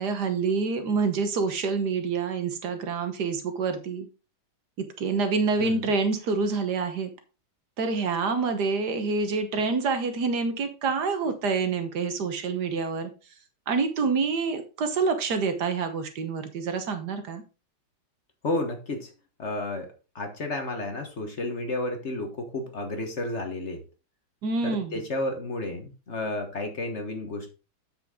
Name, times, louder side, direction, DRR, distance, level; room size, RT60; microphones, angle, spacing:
voice 1, 0.0-4.1 4.8-7.1 7.8-13.1 13.7-17.4 24.4-25.0, right 4 dB, 70° right, 8 dB, 1.7 m, -27 dB
voice 2, 18.4-19.1 19.4-19.9 20.1-23.8 24.6-27.6, left 2 dB, 45° left, 5 dB, 1.6 m, -32 dB
7.9 x 6.9 x 3.7 m, 0.32 s
omnidirectional pair, 1.9 m